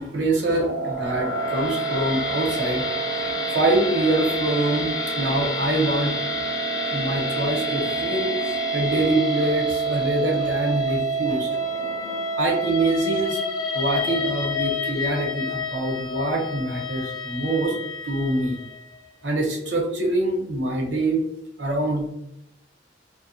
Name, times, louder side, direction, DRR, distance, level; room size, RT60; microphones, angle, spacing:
voice 1, 0.0-2.9 3.1-4.9 5.2-6.4 6.8-11.5 12.4-13.4 13.7-17.8 18.0-18.5 19.2-21.2 21.6-22.1, right 2 dB, 80° right, 0 dB, 1.0 m, -25 dB
sound 1, 0.5-18.8, right 1 dB, 20° left, 0.4 m, -27 dB
2.7 x 2.3 x 2.7 m, 0.81 s
head